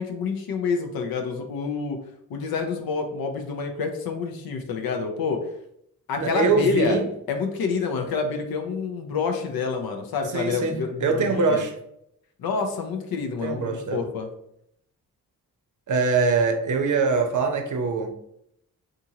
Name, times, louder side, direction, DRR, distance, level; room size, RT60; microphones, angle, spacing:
voice 1, 0.0-2.0 2.3-5.4 6.1-7.0 7.3-11.6 12.4-14.3, left 5 dB, 70° left, 0.6 m, -28 dB
voice 2, 6.1-7.1 10.3-11.8 13.4-14.1 15.9-18.1, right 4 dB, 50° right, 0.6 m, -23 dB
2.7 x 2.5 x 2.7 m
supercardioid pair, 45°, 37 cm